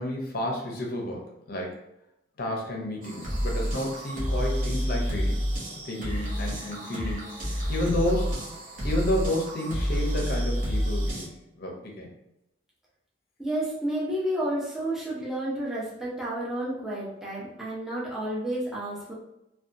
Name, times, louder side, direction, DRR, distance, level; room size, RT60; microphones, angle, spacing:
voice 1, 0.0-1.8 2.4-5.4 5.8-7.4 7.7-8.4 8.8-11.3 11.6-12.1, left 1 dB, 50° left, 0 dB, 0.6 m, -31 dB
sound 1, 3.0-11.3, equal, 45° right, 0.7 m, -29 dB
voice 2, 13.4-19.1, right 1 dB, ahead, -7 dB, 0.6 m, -31 dB
2.7 x 2.2 x 2.5 m, 0.86 s
head